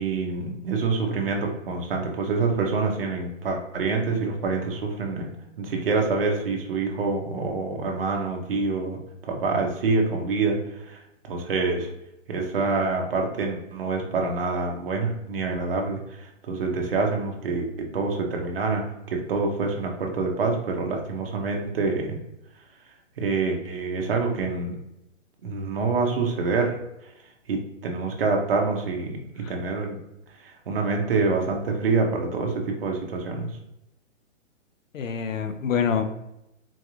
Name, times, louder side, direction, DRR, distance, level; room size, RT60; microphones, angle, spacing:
voice 1, 0.0-5.3 5.6-10.6 10.9-11.0 11.3-11.9 12.3-18.8 19.1-22.2 23.2-24.7 25.4-26.7 27.5-30.0 30.4-33.5, right 4 dB, 50° right, 1 dB, 0.7 m, -26 dB
voice 2, 34.9-36.0, left 7 dB, 85° left, 9 dB, 0.6 m, -26 dB
3.9 x 2.4 x 3.0 m, 0.87 s
hypercardioid pair, 175°, 38 cm